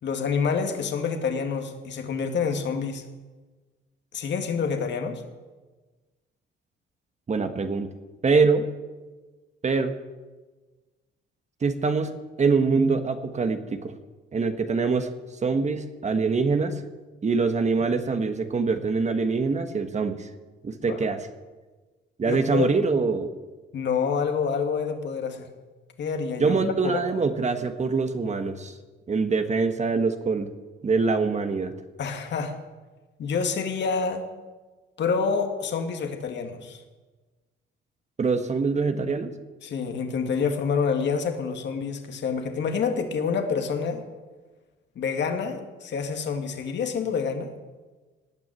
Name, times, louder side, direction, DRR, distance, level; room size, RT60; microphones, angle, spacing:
voice 1, 0.0-3.0 4.1-5.2 20.8-21.0 22.2-22.8 23.7-25.5 26.0-27.0 32.0-32.6 33.2-34.3 35.0-36.8 39.6-44.0 45.0-47.5, left 5 dB, 65° left, 5 dB, 2.2 m, -27 dB
voice 2, 7.3-7.9 8.2-8.7 9.6-9.9 11.6-13.9 14.3-15.1 15.4-16.8 17.2-20.3 20.6-21.2 22.2-23.3 26.4-28.7 29.1-30.5 30.8-31.7 38.2-39.3, right 4 dB, 35° right, 8 dB, 1.3 m, -24 dB
18.5 x 6.2 x 9.5 m, 1.3 s
cardioid pair, 90°, 20 cm